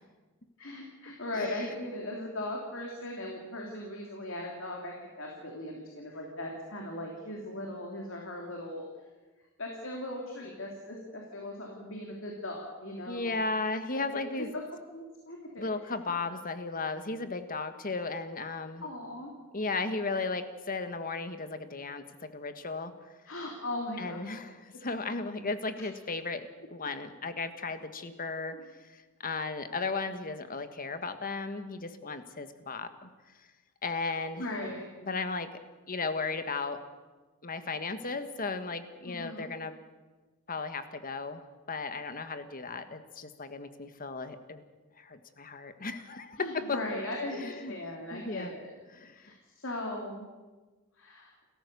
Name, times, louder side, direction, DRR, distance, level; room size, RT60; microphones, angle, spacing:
voice 1, 0.6-8.8 9.6-13.3 13.9-14.6 14.9-15.9 18.8-19.3 23.3-24.2 25.2-25.3 34.4-34.9 39.0-39.5 46.4-48.7 49.1-50.3 50.9-51.3, left 1 dB, 65° left, 0 dB, 3.3 m, -39 dB
voice 2, 1.3-1.9 13.1-14.5 15.6-18.8 19.5-22.9 24.0-28.5 28.9-33.1 33.8-34.4 35.0-35.5 35.9-36.8 37.4-39.7 40.5-44.6 45.0-46.8 47.3-47.7 48.1-48.5 48.9-49.3, left 3 dB, 40° left, 9 dB, 1.6 m, -35 dB
29.5 x 14.5 x 6.9 m, 1.3 s
head